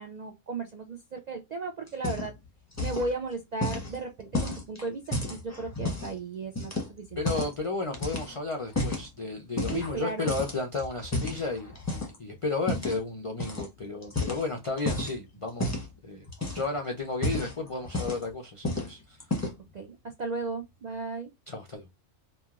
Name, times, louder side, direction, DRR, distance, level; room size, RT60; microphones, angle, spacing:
voice 1, 0.0-2.3 2.8-7.2 9.7-10.3 19.7-21.3, right 3 dB, 65° right, 0.4 m, -35 dB
sound 1, 1.9-2.5 2.7-3.1 3.6-6.1 6.6-7.6 7.9-9.1 9.6-10.0 10.3-12.2 12.7-13.0 13.4-13.7 14.0-15.2 15.6-15.9 16.3-16.8 17.1-18.3 18.6-18.9 19.2-19.7, left 2 dB, 15° left, 0.7 m, -32 dB
voice 2, 7.2-16.3 16.5-19.2 21.5-21.9, left 3 dB, 55° left, 0.3 m, -33 dB
3.0 x 2.4 x 2.3 m
omnidirectional pair, 1.3 m